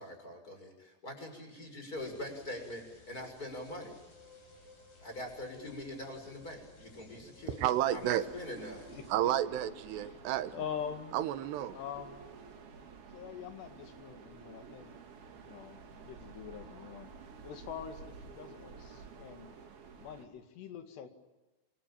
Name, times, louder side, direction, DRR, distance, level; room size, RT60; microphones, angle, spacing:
voice 1, 0.0-4.0 5.0-7.6 7.9-8.9, left 1 dB, 20° left, 6.7 m, -43 dB
sound 1, 2.0-9.2, left 2 dB, 60° left, 8.4 m, -57 dB
voice 2, 7.6-8.2 9.1-10.5 11.1-11.8, right 12 dB, 85° right, 3.3 m, -31 dB
sound 2, 7.9-20.3, right 5 dB, 65° right, 5.0 m, -51 dB
voice 3, 8.9-9.3 9.9-10.2 10.5-11.2 11.7-12.3 13.1-15.0 15.4-17.1 17.4-19.6 20.0-21.1, left 8 dB, 85° left, 4.3 m, -44 dB
27.5 x 23.5 x 8.9 m
omnidirectional pair, 4.8 m